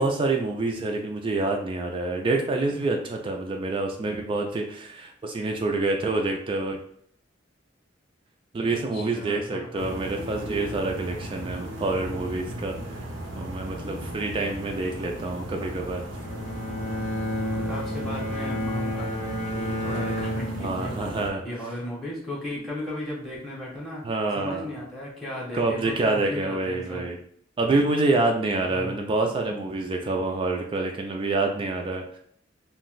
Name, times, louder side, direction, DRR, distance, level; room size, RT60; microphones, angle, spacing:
voice 1, 0.0-6.8 8.5-13.1 13.4-16.0 20.5-21.4 24.0-24.7 25.5-27.2 27.6-32.2, right 2 dB, 30° right, 2 dB, 0.3 m, -27 dB
voice 2, 8.7-10.1 17.3-24.0 24.4-27.1 28.6-29.0, left 1 dB, ahead, -7 dB, 0.7 m, -36 dB
sound 1, 9.8-21.3, right 1 dB, 75° right, 0.6 m, -36 dB
Bowed string instrument, 16.2-21.4, left 1 dB, 40° left, 0.5 m, -31 dB
2.6 x 2.1 x 3.8 m, 0.62 s
head